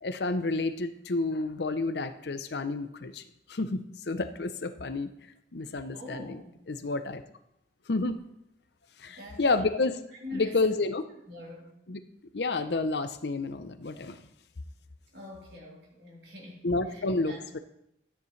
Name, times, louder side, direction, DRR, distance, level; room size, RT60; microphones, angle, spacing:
voice 1, 0.0-3.2 3.5-3.8 4.1-5.1 5.5-6.4 6.7-7.2 7.9-8.2 9.0-10.0 10.3-11.1 11.9-12.0 12.3-14.2 16.6-17.6, left 3 dB, 70° left, 10 dB, 0.7 m, -30 dB
voice 2, 5.9-6.5 9.1-9.7 10.1-10.7 11.3-11.7 15.1-17.6, left 1 dB, 75° right, -4 dB, 3.8 m, -44 dB
13.5 x 9.3 x 3.3 m, 0.80 s
head